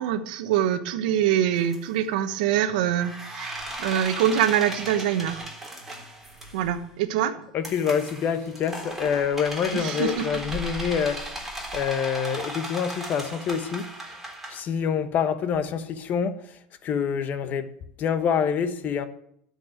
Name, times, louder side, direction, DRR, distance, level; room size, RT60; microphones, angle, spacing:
voice 1, 0.0-5.4 6.5-7.5 9.7-10.3, right 10 dB, 75° right, 1.0 m, -24 dB
sound 1, 1.6-1.8 3.0-6.7 7.6-14.6, right 1 dB, 5° right, 3.3 m, -36 dB
voice 2, 7.5-11.4 11.7-13.9 14.5-17.7 18.0-19.1, left 7 dB, 40° left, 1.2 m, -26 dB
12.5 x 5.5 x 9.0 m
supercardioid pair, 115°, 4 cm